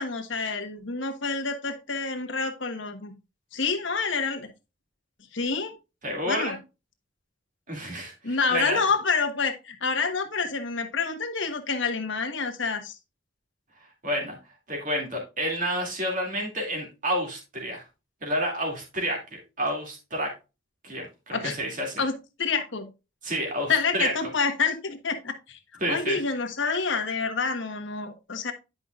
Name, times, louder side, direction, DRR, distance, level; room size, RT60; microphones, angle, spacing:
voice 1, 0.0-3.1 3.5-4.5 5.3-5.8 6.3-6.6 8.2-12.9 21.3-21.6 22.0-22.1 22.4-22.9 23.7-25.6 25.9-28.5, left 4 dB, 65° left, 6 dB, 1.2 m, -28 dB
voice 2, 6.0-6.6 7.7-8.8 14.0-14.3 14.7-17.8 18.2-19.2 19.6-20.3 20.8-22.0 23.2-24.1 25.8-26.2, equal, 40° right, 1 dB, 2.4 m, -29 dB
10.5 x 5.4 x 2.4 m, 0.27 s
head